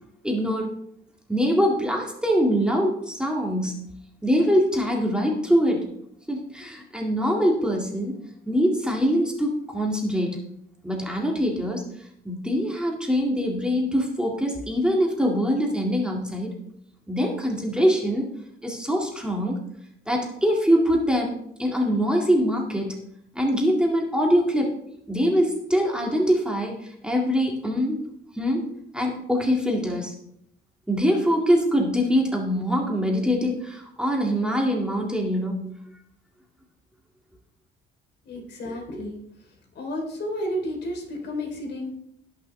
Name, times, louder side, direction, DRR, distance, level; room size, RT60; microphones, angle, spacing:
voice 1, 0.2-0.7 1.3-3.8 4.2-5.9 6.3-8.2 8.5-10.4 10.8-11.8 12.2-16.6 17.1-18.3 18.6-19.6 20.1-21.3 21.6-23.0 23.3-24.7 25.1-28.1 28.3-28.7 28.9-30.1 30.9-35.6, equal, 5° right, 0 dB, 2.0 m, -23 dB
voice 2, 38.2-39.2 39.7-41.9, equal, 60° left, 1 dB, 3.2 m, -31 dB
18.0 x 6.2 x 3.3 m, 0.72 s
cardioid pair, 110°, 20 cm